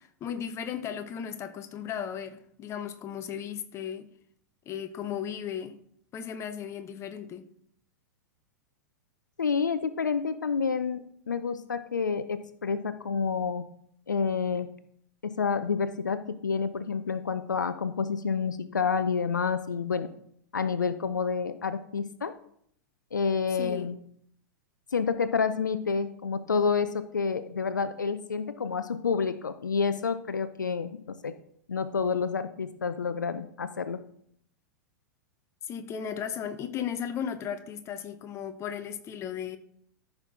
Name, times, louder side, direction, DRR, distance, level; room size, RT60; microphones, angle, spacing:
voice 1, 0.0-4.1 4.7-5.7 6.1-7.4 23.6-23.9 35.6-39.6, left 8 dB, 25° left, 1.0 m, -36 dB
voice 2, 9.4-13.6 14.1-14.7 15.2-20.1 20.5-22.3 23.1-24.0 24.9-31.3 31.7-34.0, left 5 dB, 75° left, 0.7 m, -29 dB
14.0 x 6.0 x 3.8 m
figure-of-eight pair, 95°, 10 cm